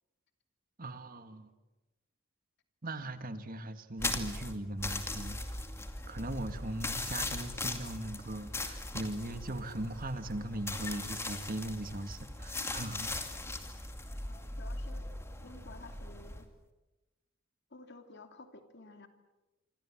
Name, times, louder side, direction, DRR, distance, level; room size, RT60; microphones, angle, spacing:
voice 1, 0.8-1.5 2.8-5.6 6.1-13.3, right 1 dB, 45° right, 10 dB, 1.8 m, -39 dB
sound 1, 4.0-16.4, left 2 dB, 10° left, 2.3 m, -39 dB
voice 2, 14.3-15.0 15.4-16.5 17.7-19.1, left 2 dB, 55° left, 7 dB, 2.9 m, -52 dB
26.5 x 26.5 x 7.5 m, 1.1 s
head